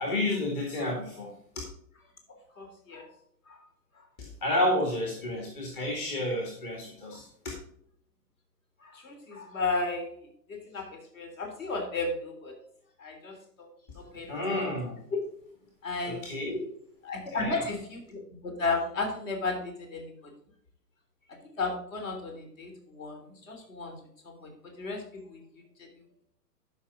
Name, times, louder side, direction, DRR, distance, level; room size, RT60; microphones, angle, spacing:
voice 1, 0.0-1.6 4.2-7.3 14.3-15.0 16.0-16.6 17.3-17.6, left 1 dB, 35° left, 0 dB, 2.1 m, -30 dB
voice 2, 2.3-3.1 3.5-3.6 4.0-4.1 7.1-7.2 8.8-10.3 10.7-12.6 13.0-13.7 13.9-14.4 15.8-16.6 17.0-20.1 21.4-24.0 24.2-25.0 25.3-25.4 25.8-25.9, left 3 dB, 55° left, 3 dB, 3.4 m, -34 dB
12.5 x 5.6 x 3.7 m, 0.68 s
figure-of-eight pair, 115°, 48 cm